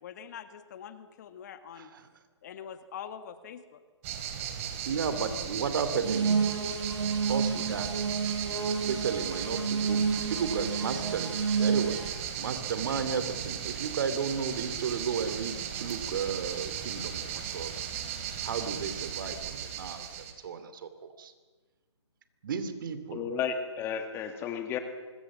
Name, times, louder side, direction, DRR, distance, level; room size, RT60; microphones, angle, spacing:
voice 1, 0.0-1.9 2.4-3.8, left 8 dB, 35° left, 10 dB, 1.6 m, -44 dB
sound 1, 4.0-20.3, right 9 dB, 30° right, 3.0 m, -36 dB
voice 2, 4.9-6.5 7.3-7.9 8.9-12.0 12.4-17.7 18.4-20.0 20.4-21.3 22.4-23.3, right 6 dB, 45° right, 11 dB, 2.8 m, -33 dB
sound 2, 6.0-12.1, right 5 dB, 70° right, 5.6 m, -30 dB
voice 3, 23.1-24.8, left 7 dB, 15° left, 7 dB, 1.8 m, -33 dB
25.0 x 22.0 x 7.4 m, 1.4 s
figure-of-eight pair, 150°, 15 cm